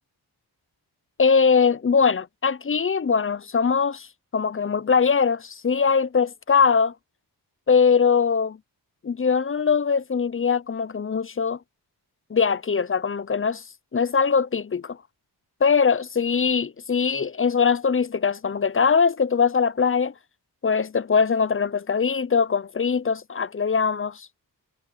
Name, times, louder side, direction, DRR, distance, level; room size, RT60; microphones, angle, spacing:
voice 1, 1.2-4.1 4.3-6.9 7.7-8.6 9.0-11.6 12.3-13.6 13.9-15.0 15.6-20.1 20.6-24.3, left 5 dB, 30° left, 0.6 m, -21 dB
wide cardioid pair, 70°, 42 cm